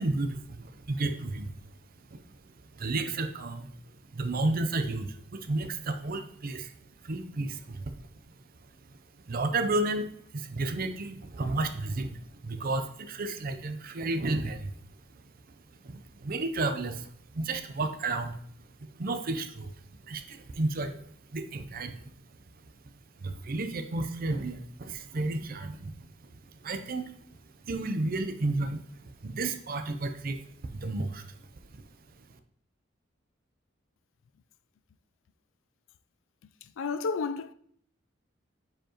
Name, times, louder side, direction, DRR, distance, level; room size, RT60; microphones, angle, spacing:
voice 1, 0.0-1.5 2.0-2.4 2.7-3.7 4.1-6.7 7.0-8.0 9.3-14.8 15.1-15.2 15.8-18.4 18.9-21.0 21.3-22.0 22.6-22.7 23.2-27.1 27.6-31.4 31.7-31.9 32.3-32.4, right 2 dB, 50° right, 0.6 m, -32 dB
voice 2, 36.6-37.5, left 4 dB, 80° left, 0.4 m, -32 dB
7.5 x 4.6 x 3.0 m
head